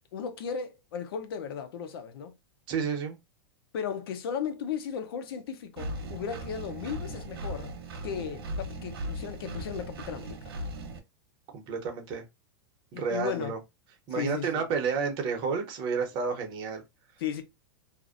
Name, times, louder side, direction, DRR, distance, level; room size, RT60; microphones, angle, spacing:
voice 1, 0.1-2.3 3.7-7.7 8.0-10.4 12.9-13.5 14.1-14.7 17.2-17.4, left 7 dB, 75° left, 0.6 m, -35 dB
voice 2, 2.7-3.2 11.5-12.2 12.9-13.6 14.1-16.8, right 5 dB, 40° right, 0.7 m, -30 dB
Engine, 5.8-11.0, right 1 dB, 85° right, 0.6 m, -38 dB
2.5 x 2.1 x 2.4 m
supercardioid pair, 135°, 12 cm